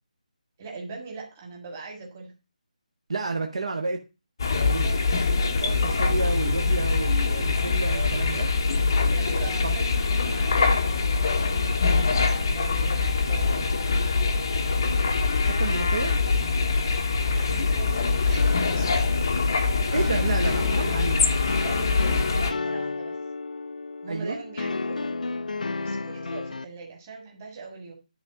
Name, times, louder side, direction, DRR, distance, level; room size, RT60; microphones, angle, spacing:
voice 1, 0.6-2.3 4.8-5.1 5.5-6.0 7.9-8.3 8.9-13.9 17.2-18.9 19.9-20.2 20.6-20.7 21.6-23.1 24.0-25.1 25.8-27.9, right 3 dB, 15° right, -1 dB, 1.7 m, -41 dB
voice 2, 3.1-4.0 4.6-4.9 5.7-8.5 9.6-9.8 15.4-16.2 19.9-21.2 24.1-24.4, right 3 dB, 50° right, 4 dB, 1.0 m, -30 dB
sound 1, 4.4-22.5, left 4 dB, 30° left, 0.7 m, -24 dB
sound 2, 18.4-26.6, left 3 dB, 70° left, 0.5 m, -32 dB
10.5 x 3.6 x 5.9 m, 0.29 s
hypercardioid pair, 175°, 4 cm